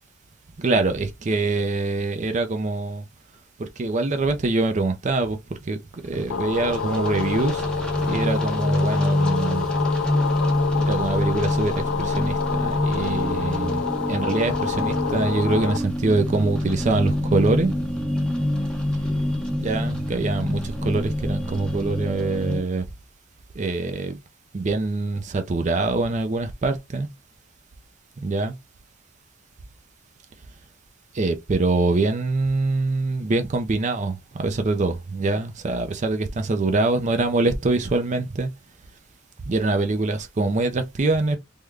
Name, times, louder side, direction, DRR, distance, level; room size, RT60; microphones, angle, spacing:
voice 1, 0.6-3.0 3.6-7.6 8.0-9.7 10.8-17.7 19.5-22.8 23.6-24.2 24.5-27.1 28.2-28.6 31.1-38.5 39.5-41.4, right 3 dB, 35° right, 0.4 m, -24 dB
sound 1, 6.0-22.6, left 1 dB, 5° left, 0.6 m, -26 dB
sound 2, 6.3-15.8, left 6 dB, 60° left, 0.4 m, -28 dB
3.5 x 2.1 x 3.2 m
head